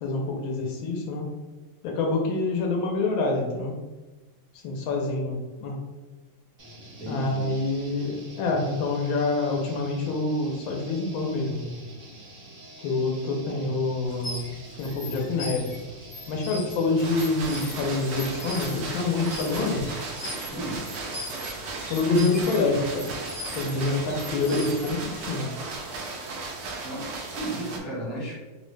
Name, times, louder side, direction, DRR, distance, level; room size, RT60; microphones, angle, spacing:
voice 1, 0.0-1.3 1.8-3.7 4.5-5.8 7.1-11.7 12.8-15.7 16.3-19.9 21.9-23.1 23.5-25.5, left 3 dB, 80° left, 1 dB, 1.3 m, -26 dB
sound 1, 6.6-20.3, right 1 dB, 40° right, 0.7 m, -46 dB
voice 2, 7.0-7.5 20.5-20.8 26.8-28.4, right 1 dB, ahead, -7 dB, 0.6 m, -34 dB
sound 2, 14.0-25.3, left 1 dB, 55° left, 1.1 m, -40 dB
sound 3, 17.0-27.8, right 3 dB, 75° right, 1.0 m, -36 dB
3.7 x 2.0 x 3.1 m, 1.1 s
omnidirectional pair, 2.3 m